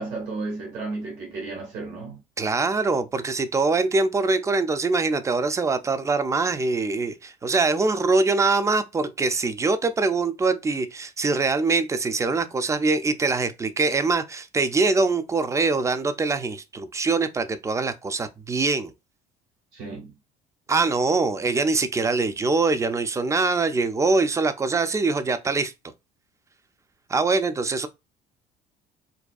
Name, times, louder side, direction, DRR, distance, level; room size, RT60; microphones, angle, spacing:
voice 1, 0.0-2.2 19.7-20.1, right 3 dB, 65° right, 1.5 m, -33 dB
voice 2, 2.4-18.9 20.7-25.7 27.1-27.9, right 3 dB, 15° right, 0.3 m, -23 dB
2.5 x 2.2 x 2.3 m
hypercardioid pair, 60°, 20 cm